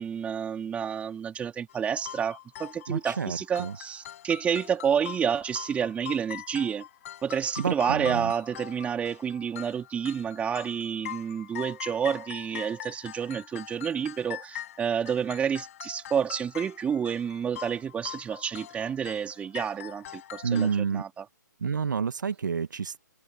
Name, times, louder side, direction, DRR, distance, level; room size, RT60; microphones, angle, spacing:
voice 1, 0.0-6.8 7.2-21.2, right 7 dB, 10° right, 3.2 m, -29 dB
sound 1, 1.7-20.8, left 12 dB, 45° left, 6.5 m, -43 dB
voice 2, 2.9-3.8 7.6-8.3 20.4-21.0 21.6-23.0, right 6 dB, 75° right, 1.7 m, -29 dB
hypercardioid pair, 140°, 10 cm